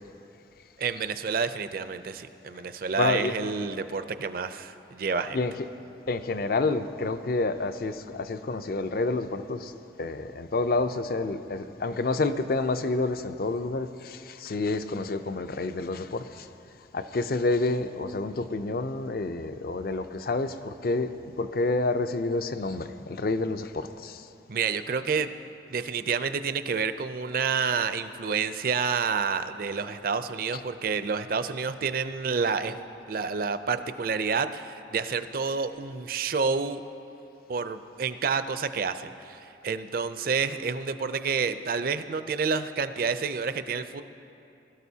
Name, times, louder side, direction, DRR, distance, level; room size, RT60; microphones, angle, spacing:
voice 1, 0.8-5.4 24.5-25.3 25.7-32.8 33.1-36.8 37.5-44.0, right 5 dB, 50° right, 11 dB, 0.4 m, -29 dB
voice 2, 3.0-3.3 5.3-5.5 6.1-9.7 10.0-16.5 16.9-21.1 21.4-24.2, left 3 dB, 55° left, 11 dB, 0.5 m, -28 dB
21.0 x 12.5 x 2.8 m, 2.8 s
head